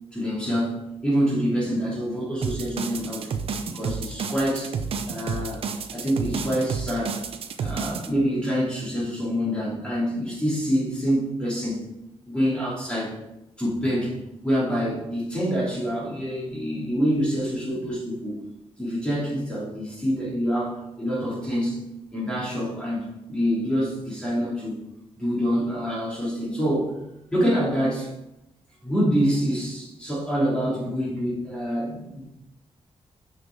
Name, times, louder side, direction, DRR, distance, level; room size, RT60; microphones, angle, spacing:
voice 1, 0.1-0.8 1.0-3.3 3.7-4.7 5.0-5.6 5.9-7.2 7.6-11.9 12.3-13.1 13.6-18.4 18.8-21.8 22.1-24.8 25.2-26.9 27.3-28.1 28.8-32.2, equal, 10° left, -7 dB, 3.3 m, -26 dB
sound 1, 2.4-8.1, right 5 dB, 60° right, 0.7 m, -30 dB
6.8 x 6.6 x 4.8 m, 0.89 s
wide cardioid pair, 165°, 11 cm